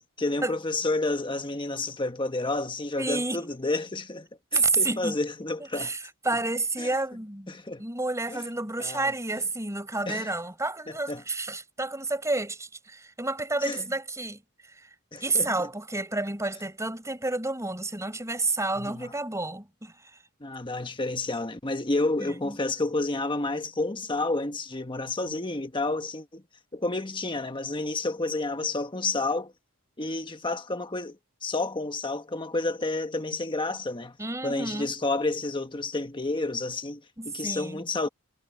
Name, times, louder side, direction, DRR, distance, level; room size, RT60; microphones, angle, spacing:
voice 1, 0.0-5.9 6.8-6.9 7.5-7.8 8.3-8.4 8.8-9.1 10.1-10.3 11.1-11.2 13.6-13.8 15.1-15.7 18.8-19.1 20.4-26.4 26.7-29.5 30.0-34.2 34.4-38.1, left 2 dB, 20° left, 1.3 m, -30 dB
voice 2, 3.0-3.4 4.5-5.2 5.7-14.4 14.7-14.9 15.2-20.2 22.2-22.6 34.2-34.9 37.2-37.8, right 2 dB, 15° right, 4.7 m, -30 dB
head